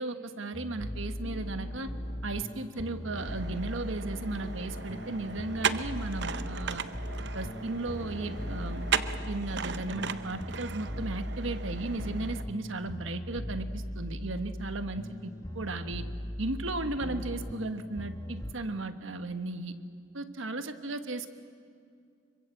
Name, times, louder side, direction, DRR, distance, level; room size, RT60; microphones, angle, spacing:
voice 1, 0.0-1.9 2.2-6.8 7.3-8.9 9.3-16.0 16.4-19.7 20.1-21.3, right 2 dB, 70° right, 9 dB, 1.4 m, -35 dB
sound 1, 0.5-18.5, equal, 15° left, 1.0 m, -39 dB
sound 2, 1.2-11.1, left 2 dB, 45° left, 0.9 m, -51 dB
sound 3, 3.2-12.4, right 6 dB, 55° right, 0.7 m, -37 dB
26.0 x 23.5 x 8.0 m, 2.3 s
head